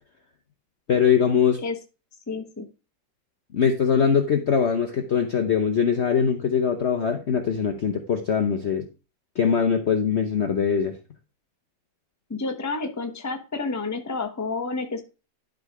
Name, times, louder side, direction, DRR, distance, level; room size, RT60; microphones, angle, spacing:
voice 1, 0.9-1.6 3.5-8.9 9.4-11.0, left 6 dB, 50° left, 6 dB, 0.8 m, -22 dB
voice 2, 2.3-2.7 12.3-15.0, left 3 dB, 15° left, 6 dB, 0.8 m, -30 dB
11.5 x 3.8 x 4.8 m, 0.32 s
omnidirectional pair, 2.0 m